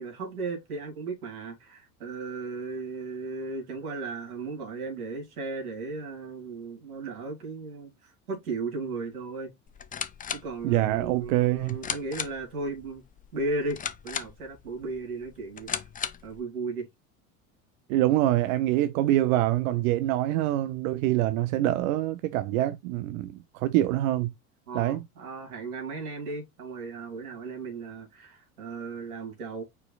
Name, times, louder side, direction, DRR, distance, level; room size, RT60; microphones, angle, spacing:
voice 1, 0.0-9.5 10.3-13.0 13.3-15.7 16.2-16.9 24.7-29.6, right 3 dB, 90° right, 2.3 m, -35 dB
sound 1, 9.7-16.4, left 7 dB, 20° left, 0.5 m, -38 dB
voice 2, 10.6-11.8 17.9-24.3 24.7-25.1, right 14 dB, 70° right, 0.5 m, -25 dB
4.8 x 4.6 x 2.3 m
hypercardioid pair, 80°, 43 cm